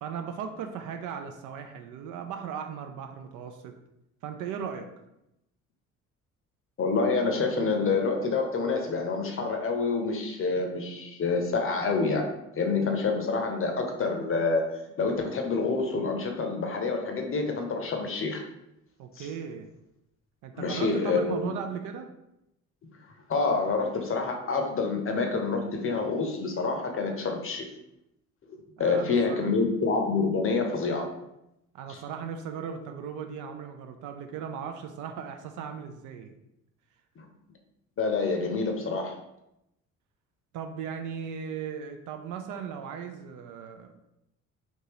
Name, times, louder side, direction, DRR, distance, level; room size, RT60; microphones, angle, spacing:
voice 1, 0.0-3.7 4.2-4.9 19.0-19.7 20.4-22.1 28.8-29.5 31.7-36.4 40.5-44.0, right 7 dB, 50° right, 6 dB, 0.5 m, -37 dB
voice 2, 6.8-12.3 12.6-18.4 19.2-19.3 20.5-21.6 23.3-27.7 28.8-31.1 31.9-32.0 37.2-37.3 38.0-39.2, left 4 dB, 35° left, 3 dB, 0.7 m, -27 dB
3.5 x 2.8 x 2.9 m, 0.85 s
figure-of-eight pair, 50°, 39 cm